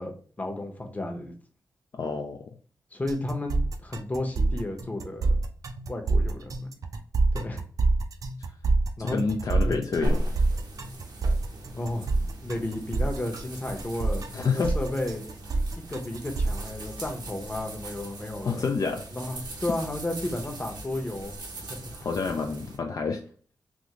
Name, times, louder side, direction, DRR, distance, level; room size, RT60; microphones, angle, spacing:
voice 1, 0.0-1.3 2.9-5.4 5.9-6.7 7.3-7.6 9.0-9.3 9.6-9.8 11.7-12.1 12.4-15.3 15.9-18.6 19.1-21.9, left 1 dB, 20° left, 3 dB, 0.8 m, -33 dB
voice 2, 1.9-2.4 9.0-10.2 14.3-14.8 18.4-19.0 21.9-23.2, left 5 dB, 55° left, 4 dB, 0.4 m, -28 dB
sound 1, 3.1-16.7, right 3 dB, 55° right, 0.5 m, -27 dB
sound 2, 10.0-22.8, right 1 dB, 80° right, 0.8 m, -38 dB
3.5 x 2.5 x 2.9 m, 0.44 s
cardioid pair, 80°, 7 cm